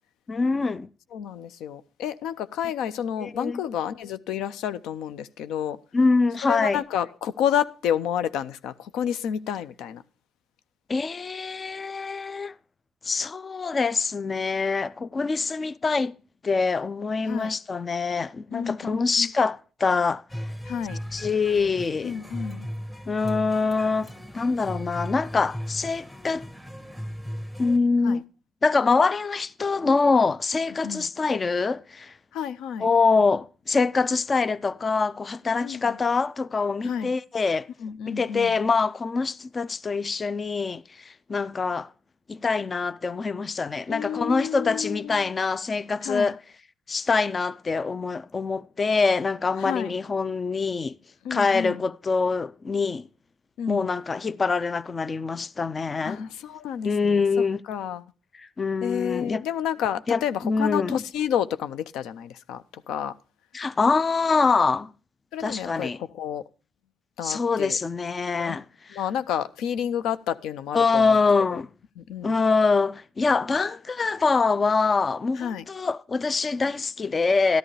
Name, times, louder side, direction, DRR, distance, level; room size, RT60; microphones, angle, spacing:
voice 1, 0.3-0.9 3.2-3.6 5.9-6.8 10.9-12.5 13.0-16.1 16.4-20.2 21.1-22.1 23.1-24.1 24.3-26.5 27.6-28.2 28.6-32.1 32.8-37.7 38.1-41.9 42.3-46.4 46.9-50.9 51.3-53.0 53.7-56.2 56.8-57.6 58.6-59.4 60.1-61.0 63.5-64.9 65.4-66.0 67.2-69.0 70.7-71.7 72.2-77.6, left 4 dB, 35° left, 0.4 m, -24 dB
voice 2, 1.1-5.8 6.5-10.0 17.3-17.5 18.5-19.3 20.7-21.0 22.0-22.7 28.0-28.2 30.8-31.1 32.3-32.9 35.6-36.0 36.8-37.2 37.8-38.6 43.9-45.3 46.0-46.3 49.6-49.9 51.2-51.8 53.6-53.9 56.0-58.0 58.8-63.2 65.3-66.4 67.2-67.8 68.4-68.6 68.9-71.2 71.5-71.6 72.0-72.3 75.4-75.6, left 9 dB, 90° left, 0.5 m, -30 dB
sound 1, 20.3-27.8, equal, 10° left, 1.5 m, -37 dB
12.5 x 11.0 x 3.2 m
cardioid pair, 90°, 0 cm